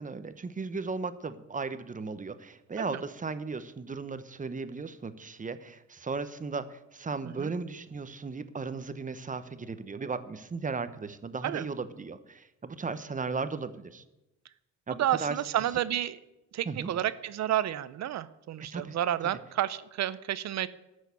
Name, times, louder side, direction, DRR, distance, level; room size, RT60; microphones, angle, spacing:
voice 1, 0.0-14.0 14.9-15.4 16.6-16.9 18.7-19.3, right 4 dB, 25° right, 12 dB, 0.9 m, -36 dB
voice 2, 15.0-16.2 16.5-20.7, right 12 dB, 60° right, 16 dB, 0.7 m, -30 dB
12.5 x 6.4 x 8.3 m, 0.96 s
cardioid pair, 90°, 30 cm